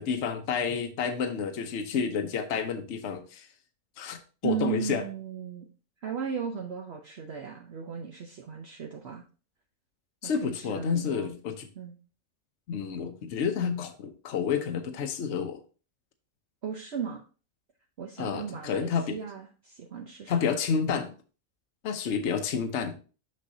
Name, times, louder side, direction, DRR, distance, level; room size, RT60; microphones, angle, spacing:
voice 1, 0.0-3.5 4.0-4.2 4.4-5.0 10.2-11.7 12.7-15.6 18.2-19.2 20.3-21.1 21.8-23.0, left 6 dB, 65° left, 6 dB, 1.0 m, -30 dB
voice 2, 4.4-5.7 6.0-9.2 10.2-11.3 11.8-12.0 16.6-17.2 18.0-20.3, right 7 dB, 60° right, 2 dB, 1.0 m, -36 dB
6.5 x 6.3 x 2.6 m, 0.36 s
omnidirectional pair, 1.3 m